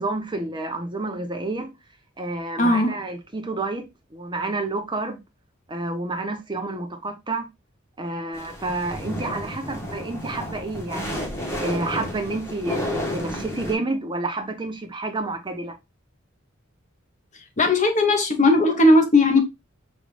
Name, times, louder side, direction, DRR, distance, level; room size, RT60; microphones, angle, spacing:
voice 1, 0.0-1.7 2.2-3.9 4.1-5.2 5.7-7.5 8.0-11.3 11.6-15.8, right 2 dB, 25° right, 0.9 m, -29 dB
voice 2, 2.6-3.0 17.6-19.4, left 2 dB, 35° left, 1.0 m, -17 dB
sound 1, 8.3-13.7, equal, 15° left, 1.2 m, -31 dB
5.2 x 2.5 x 3.2 m
head